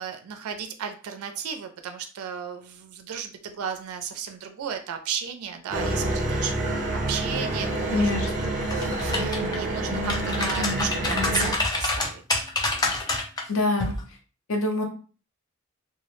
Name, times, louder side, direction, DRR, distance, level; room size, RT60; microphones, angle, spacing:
voice 1, 0.0-8.1 8.4-12.5, right 7 dB, 85° right, 6 dB, 0.4 m, -34 dB
sound 1, 5.7-11.5, right 1 dB, 40° right, 0.6 m, -27 dB
voice 2, 7.9-8.5 13.5-13.9 14.5-14.8, left 2 dB, 65° left, 2 dB, 0.6 m, -25 dB
sound 2, 8.6-9.6 10.0-13.4 13.8-14.0, left 2 dB, 20° left, 0.4 m, -27 dB
2.2 x 2.0 x 3.0 m, 0.38 s
head